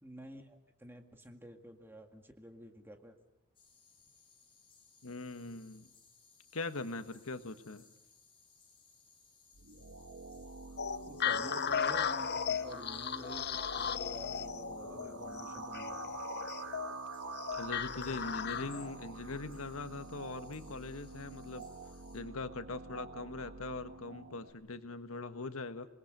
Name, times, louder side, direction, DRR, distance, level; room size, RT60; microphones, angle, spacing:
voice 1, 0.0-3.2 11.1-16.1 18.1-18.7, equal, 10° right, 5 dB, 2.0 m, -51 dB
sound 1, 3.5-22.2, left 5 dB, 25° left, 5.8 m, -65 dB
voice 2, 5.0-5.9 6.5-7.9 17.5-21.7 22.1-25.9, left 3 dB, 85° left, 10 dB, 1.4 m, -41 dB
sound 2, 9.5-24.5, right 4 dB, 85° right, 2.0 m, -47 dB
sound 3, 10.8-18.9, left 7 dB, 50° left, 0.8 m, -36 dB
27.0 x 20.0 x 6.7 m, 0.99 s
head